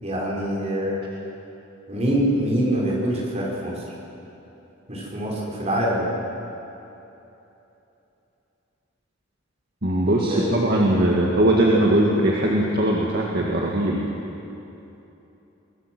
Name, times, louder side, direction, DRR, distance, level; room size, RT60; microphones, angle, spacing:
voice 1, 0.0-1.0 1.9-3.9 4.9-6.1 10.3-10.7, right 1 dB, 30° right, -4 dB, 5.0 m, -24 dB
voice 2, 9.8-14.0, right 1 dB, 50° right, -2 dB, 2.0 m, -20 dB
24.0 x 20.5 x 6.3 m, 3.0 s
head